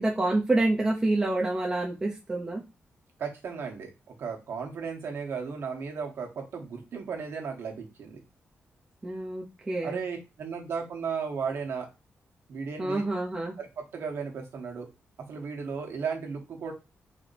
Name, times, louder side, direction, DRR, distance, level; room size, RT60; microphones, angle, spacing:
voice 1, 0.0-2.6 9.0-10.0 12.8-13.5, right 2 dB, 15° right, -2 dB, 0.7 m, -27 dB
voice 2, 3.2-8.2 9.8-11.9 12.5-13.0 13.6-14.9 15.2-16.7, right 6 dB, 65° right, 2 dB, 1.4 m, -35 dB
4.3 x 2.9 x 4.1 m, 0.26 s
wide cardioid pair, 170°, 5 cm